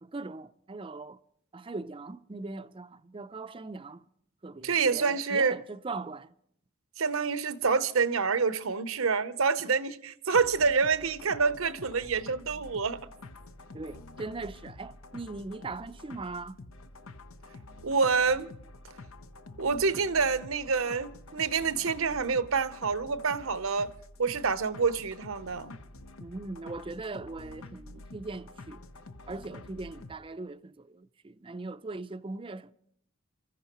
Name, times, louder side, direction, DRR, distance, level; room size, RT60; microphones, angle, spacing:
voice 1, 0.0-1.2 1.5-4.1 4.4-6.3 13.7-16.6 26.2-28.8 29.3-32.7, right 3 dB, 25° right, 0.5 m, -40 dB
voice 2, 4.6-5.6 7.0-13.0 17.8-18.5 19.6-23.9 24.2-25.7, right 5 dB, 80° right, 0.8 m, -27 dB
sound 1, 10.3-30.2, left 2 dB, 85° left, 0.9 m, -48 dB
28.0 x 14.5 x 3.0 m
head